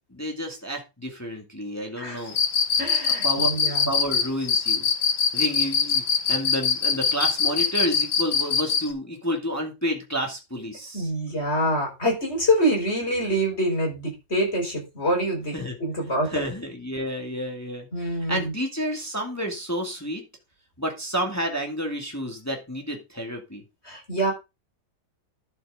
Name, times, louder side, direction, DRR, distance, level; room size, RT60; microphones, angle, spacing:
voice 1, 0.1-2.4 3.2-4.9 5.3-11.1 15.5-15.8 16.2-17.9 18.3-20.2 20.8-23.6, equal, 10° left, 2 dB, 2.0 m, -30 dB
Cricket, 2.3-8.9, left 6 dB, 70° left, 2.1 m, -22 dB
voice 2, 2.8-3.9 10.9-16.4 17.9-18.5 23.8-24.3, equal, 35° left, 1 dB, 4.9 m, -25 dB
11.5 x 7.7 x 3.7 m, 0.25 s
omnidirectional pair, 2.0 m